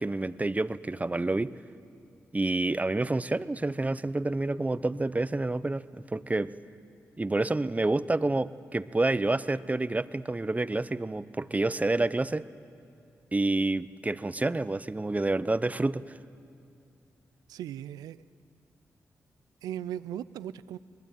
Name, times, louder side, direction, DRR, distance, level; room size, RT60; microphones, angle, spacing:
voice 1, 0.0-1.5 2.3-6.5 7.2-12.5 13.3-16.2, right 2 dB, 25° right, 15 dB, 0.8 m, -28 dB
voice 2, 17.5-18.2 19.6-20.8, right 11 dB, 90° right, 17 dB, 0.5 m, -37 dB
24.0 x 19.5 x 9.2 m, 2.5 s
supercardioid pair, 45°, 6 cm